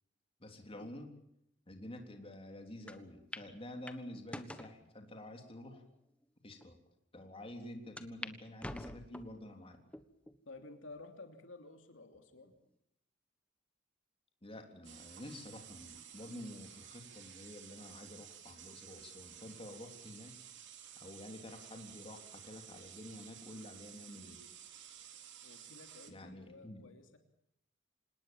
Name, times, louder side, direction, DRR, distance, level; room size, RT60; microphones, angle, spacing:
voice 1, 0.4-1.1 1.7-5.8 6.4-6.8 7.1-9.8 14.4-20.3 21.0-24.4 26.1-26.9, left 1 dB, 30° left, 4 dB, 3.7 m, -49 dB
sound 1, 2.9-3.0 3.3-3.5 3.9-4.7 5.4-5.5 6.2-6.3 6.6-6.7 8.0-8.3 8.6-9.4 9.9-10.4 10.9-11.0 12.1-12.6, left 1 dB, 5° left, 1.4 m, -46 dB
voice 2, 10.5-12.5 25.4-27.2, left 2 dB, 70° left, 5 dB, 3.0 m, -53 dB
sound 2, 14.8-26.1, right 9 dB, 65° right, 3.3 m, -53 dB
26.5 x 20.0 x 7.3 m, 0.78 s
head